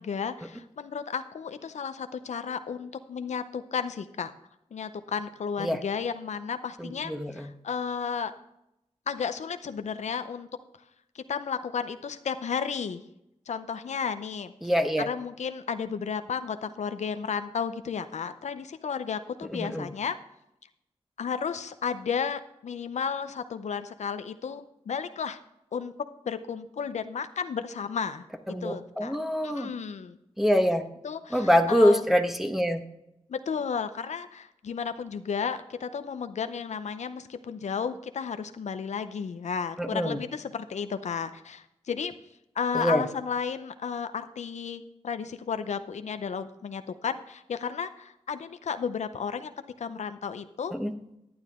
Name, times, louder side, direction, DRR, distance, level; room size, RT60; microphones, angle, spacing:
voice 1, 0.0-4.3 4.7-8.3 9.1-10.5 11.1-13.0 13.5-20.2 21.2-25.4 25.7-25.9 26.3-28.2 28.6-29.1 29.4-30.2 31.0-32.0 33.3-42.1 42.6-49.5 49.8-50.7, left 6 dB, 85° left, 10 dB, 0.6 m, -33 dB
voice 2, 6.8-7.5 14.6-15.1 19.5-19.9 28.5-29.7 30.4-30.8 31.3-32.8 39.8-40.2 42.7-43.0 50.7-50.9, equal, ahead, 6 dB, 1.2 m, -25 dB
11.0 x 9.7 x 3.6 m, 0.82 s
cardioid pair, 65°, 12 cm